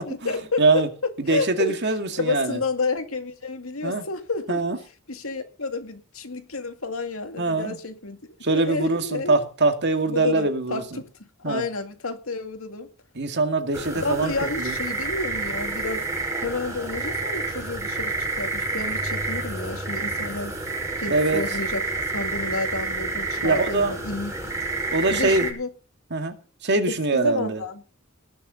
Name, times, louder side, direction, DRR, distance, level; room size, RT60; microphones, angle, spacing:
voice 1, 0.1-1.8 2.2-4.6 5.1-8.2 8.5-9.4 10.1-11.1 11.5-12.9 13.9-16.0 16.4-20.5 21.0-24.5 25.1-25.7 26.9-27.8, left 3 dB, 85° left, 2.3 m, -30 dB
voice 2, 0.6-0.9 1.2-2.6 3.8-4.1 4.5-4.8 7.4-7.8 8.4-11.0 11.4-11.6 13.2-14.8 21.1-21.4 23.4-24.0 24.9-25.5 26.1-26.3 26.6-27.6, right 3 dB, 55° right, 2.2 m, -23 dB
sound 1, 13.7-25.5, right 3 dB, 15° right, 5.5 m, -29 dB
19.0 x 6.9 x 7.0 m
head